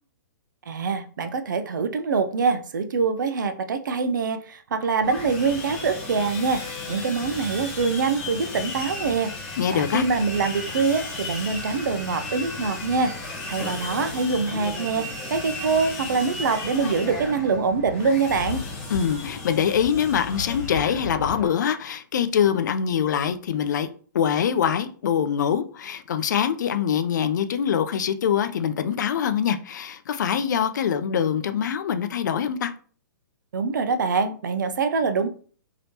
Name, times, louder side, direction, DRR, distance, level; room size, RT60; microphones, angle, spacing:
voice 1, 0.7-6.6 6.9-18.6 33.5-35.3, right 4 dB, 70° right, 0.5 m, -24 dB
Sawing, 5.0-21.5, left 3 dB, 35° left, 1.2 m, -34 dB
voice 2, 9.6-10.0 18.9-23.9 24.1-32.7, left 8 dB, 65° left, 0.4 m, -24 dB
3.3 x 2.8 x 2.8 m
hypercardioid pair, 125°, 10 cm